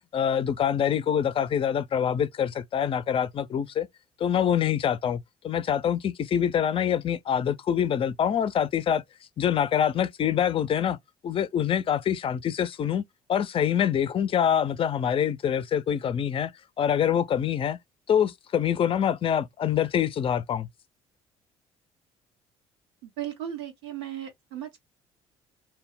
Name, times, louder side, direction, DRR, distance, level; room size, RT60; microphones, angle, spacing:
voice 1, 0.1-3.9 4.2-9.0 9.4-11.0 11.2-13.0 13.3-16.5 16.8-17.8 18.1-20.7, left 9 dB, 45° left, 0.4 m, -25 dB
voice 2, 23.0-24.8, right 11 dB, 90° right, 0.9 m, -36 dB
2.2 x 2.0 x 3.6 m
hypercardioid pair, 65°, 13 cm